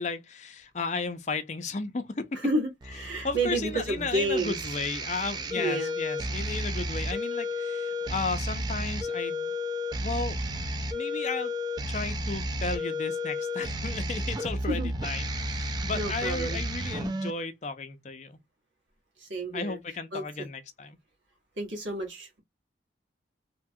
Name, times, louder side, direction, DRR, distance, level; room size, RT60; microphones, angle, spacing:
voice 1, 0.0-2.4 3.2-9.5 10.0-10.6 10.9-11.5 11.9-18.4 19.5-21.0, left 4 dB, 40° left, 0.5 m, -34 dB
voice 2, 2.4-4.5 5.5-5.9 14.7-14.9 15.9-16.6 19.2-19.8 20.1-20.3 21.6-22.4, right 2 dB, 85° right, 1.4 m, -30 dB
sound 1, 2.8-17.3, left 1 dB, 25° right, 0.3 m, -32 dB
2.8 x 2.3 x 2.7 m
head